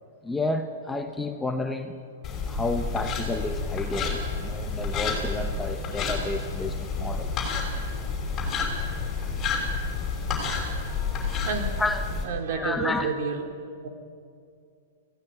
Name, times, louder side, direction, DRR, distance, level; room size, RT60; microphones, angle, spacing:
voice 1, 0.2-2.0 2.5-7.5 10.9-11.5 11.8-12.2 12.6-13.1, left 2 dB, 5° left, 1.1 m, -31 dB
sound 1, 2.2-12.2, left 4 dB, 20° left, 5.9 m, -30 dB
voice 2, 12.2-13.5 13.8-13.9, right 5 dB, 55° right, 3.6 m, -29 dB
25.5 x 16.5 x 9.3 m
hypercardioid pair, 145°, 0 cm